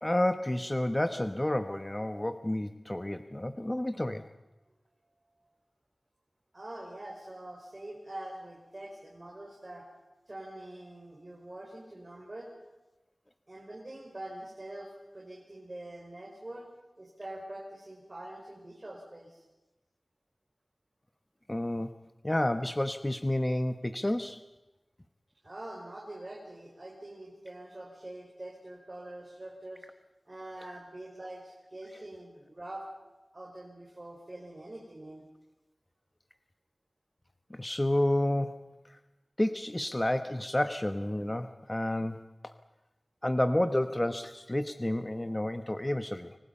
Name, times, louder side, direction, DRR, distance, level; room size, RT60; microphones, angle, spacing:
voice 1, 0.0-4.3 21.5-22.0 22.2-24.4 37.5-38.7 39.4-42.5 43.2-46.4, left 1 dB, 20° left, 9 dB, 1.0 m, -30 dB
voice 2, 6.5-9.9 10.3-12.5 13.5-16.7 17.0-19.4 25.4-29.8 30.3-32.8 33.3-35.2, right 1 dB, 40° right, -2 dB, 5.3 m, -44 dB
26.0 x 24.5 x 5.5 m, 1.1 s
wide cardioid pair, 55°, 0 cm